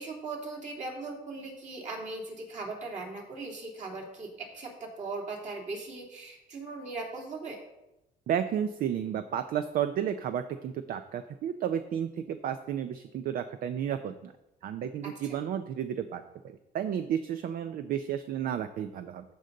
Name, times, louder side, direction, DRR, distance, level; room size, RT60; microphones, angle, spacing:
voice 1, 0.0-7.6 15.2-15.4, right 3 dB, 45° right, 0 dB, 2.6 m, -39 dB
voice 2, 8.3-14.3 14.6-19.2, right 9 dB, 60° right, 10 dB, 0.6 m, -32 dB
14.0 x 5.3 x 3.9 m, 0.95 s
cardioid pair, 110°, 17 cm